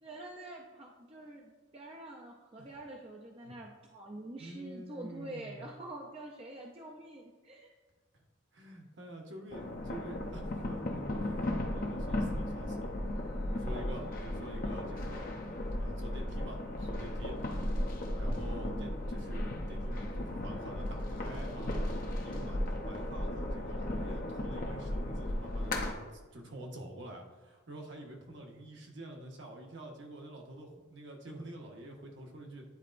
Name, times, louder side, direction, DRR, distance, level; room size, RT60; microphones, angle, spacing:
voice 1, 0.0-7.7 18.6-19.0, right 1 dB, 30° right, -1 dB, 0.5 m, -46 dB
voice 2, 4.4-5.7 8.5-12.9 13.5-15.3 15.8-17.4 18.2-32.6, right 1 dB, 60° right, 1 dB, 1.0 m, -47 dB
sound 1, 9.5-25.9, left 1 dB, 45° left, 0.6 m, -35 dB
9.9 x 4.1 x 2.5 m, 1.3 s
head